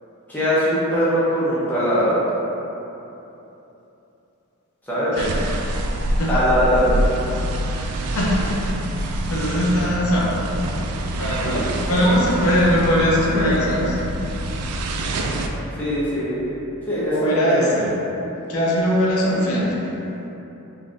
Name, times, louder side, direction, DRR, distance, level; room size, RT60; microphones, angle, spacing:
voice 1, 0.3-2.2 4.9-5.1 6.3-7.0 9.5-9.6 11.4-11.6 11.9-12.1 15.8-16.4 16.9-17.7, equal, 10° left, -11 dB, 0.7 m, -21 dB
sound 1, 5.1-15.5, right 1 dB, 80° right, 0.3 m, -26 dB
voice 2, 8.1-8.5 9.3-10.4 11.2-14.0 17.1-17.9 18.5-19.9, equal, 75° left, -5 dB, 0.6 m, -20 dB
3.7 x 2.7 x 2.5 m, 3.0 s
head